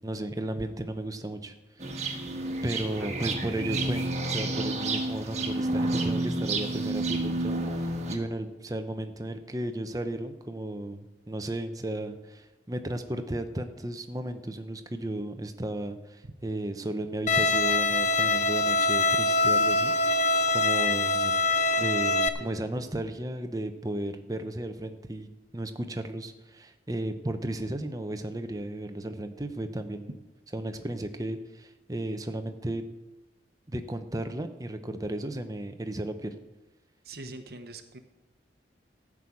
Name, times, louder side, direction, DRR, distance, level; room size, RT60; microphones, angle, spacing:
voice 1, 0.0-2.1 2.6-20.2 20.5-21.3 21.8-30.2 30.5-32.8 33.7-36.3, right 1 dB, 20° right, 8 dB, 0.8 m, -34 dB
sound 1, 1.8-8.2, right 2 dB, 40° right, 1.5 m, -30 dB
Bowed string instrument, 17.3-22.3, left 2 dB, 40° left, 0.6 m, -24 dB
voice 2, 37.1-38.0, right 2 dB, 60° right, 8 dB, 1.0 m, -42 dB
13.5 x 6.3 x 8.5 m, 1.1 s
head